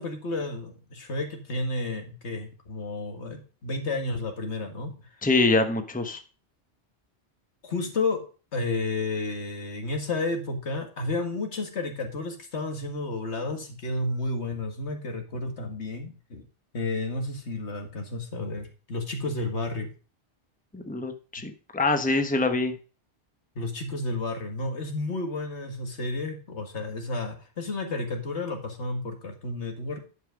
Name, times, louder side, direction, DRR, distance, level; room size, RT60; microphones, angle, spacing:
voice 1, 0.0-5.1 7.6-8.2 8.5-16.5 16.7-19.9 23.6-30.0, left 2 dB, 75° left, 4 dB, 2.0 m, -31 dB
voice 2, 5.2-6.2 20.7-22.7, left 3 dB, 10° left, 6 dB, 1.0 m, -25 dB
10.5 x 5.7 x 5.1 m, 0.36 s
omnidirectional pair, 1.2 m